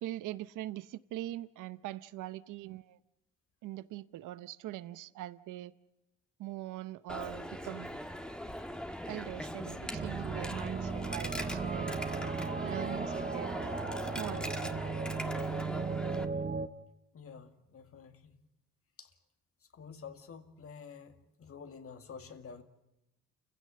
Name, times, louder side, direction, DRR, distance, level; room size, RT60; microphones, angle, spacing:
voice 1, 0.0-3.0 3.6-5.7 6.4-8.0 9.1-12.0 12.6-13.5 14.0-14.9, right 15 dB, 85° right, 0.8 m, -42 dB
Coin (dropping), 7.1-16.3, equal, 5° left, 1.5 m, -40 dB
sound 1, 9.9-16.7, right 5 dB, 25° right, 0.9 m, -36 dB
voice 2, 17.1-18.4 19.0-19.1 19.7-22.6, left 6 dB, 50° left, 2.1 m, -49 dB
29.0 x 16.0 x 7.7 m
cardioid pair, 90°, 30 cm